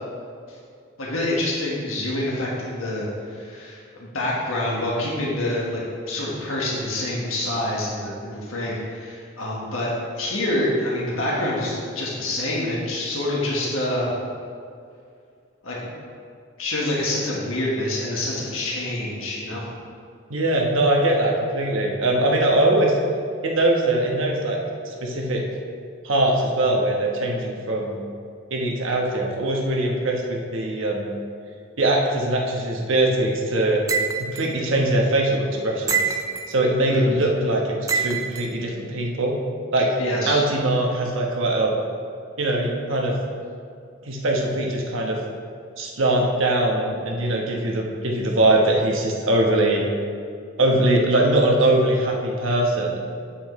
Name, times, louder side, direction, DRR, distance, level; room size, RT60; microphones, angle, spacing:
voice 1, 1.0-5.8 6.1-9.9 10.2-14.1 15.6-15.8 16.6-19.6 36.9-37.2 40.0-40.4, left 1 dB, 80° left, -5 dB, 1.5 m, -26 dB
voice 2, 20.3-22.9 23.4-24.6 24.8-25.4 26.0-28.0 28.5-31.1 31.8-33.8 34.3-36.0 36.5-39.3 39.7-39.9 40.2-41.7 42.4-43.1 44.0-45.2 45.8-49.8 50.6-53.0, right 1 dB, 70° right, -1 dB, 1.1 m, -21 dB
sound 1, 33.9-34.5 35.9-36.5 37.9-38.5, right 6 dB, 15° right, 0.4 m, -25 dB
8.5 x 7.5 x 3.2 m, 2.4 s
head